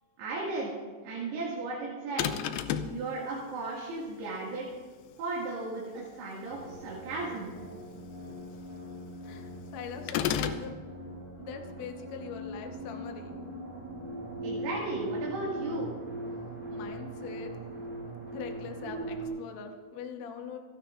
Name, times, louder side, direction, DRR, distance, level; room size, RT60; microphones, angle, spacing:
voice 1, 0.2-0.7 1.0-2.3 2.9-4.7 5.2-7.5 14.4-15.9, right 3 dB, 70° right, -5 dB, 4.2 m, -35 dB
sound 1, 2.2-3.0 10.1-10.7, left 9 dB, 80° left, 2.2 m, -30 dB
sound 2, 6.5-19.3, right 1 dB, 30° right, 5.3 m, -40 dB
voice 2, 8.5-8.8 9.2-10.8 11.3-13.4 13.7-14.0 16.3-17.6 18.3-20.6, left 6 dB, 65° left, 3 dB, 1.8 m, -43 dB
27.5 x 12.5 x 2.6 m, 1.5 s
omnidirectional pair, 4.9 m